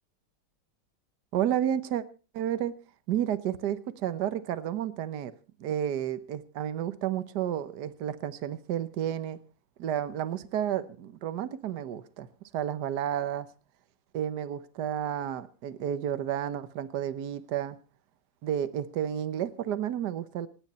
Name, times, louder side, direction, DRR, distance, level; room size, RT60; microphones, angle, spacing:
voice 1, 1.3-2.0 2.3-2.7 3.1-5.3 5.6-9.4 9.8-12.3 12.5-13.5 14.1-17.8 18.4-20.5, right 10 dB, 65° right, 12 dB, 1.5 m, -31 dB
26.5 x 9.6 x 4.2 m, 0.36 s
omnidirectional pair, 2.0 m